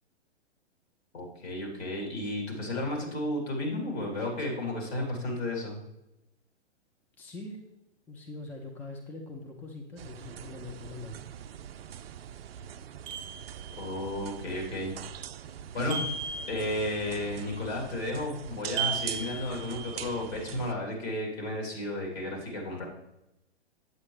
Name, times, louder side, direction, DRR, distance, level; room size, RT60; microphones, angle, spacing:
voice 1, 1.1-5.8 13.8-14.9 15.7-16.0 16.5-22.9, left 1 dB, 65° left, -1 dB, 3.2 m, -33 dB
voice 2, 7.2-7.6 8.1-11.2, left 2 dB, 5° left, 1 dB, 0.5 m, -42 dB
sound 1, 10.0-20.7, right 9 dB, 60° right, 0.5 m, -43 dB
sound 2, 13.1-14.1 15.9-17.2 18.8-20.3, right 5 dB, 30° right, 1.0 m, -36 dB
8.4 x 8.2 x 3.3 m, 0.90 s
figure-of-eight pair, 115°, 34 cm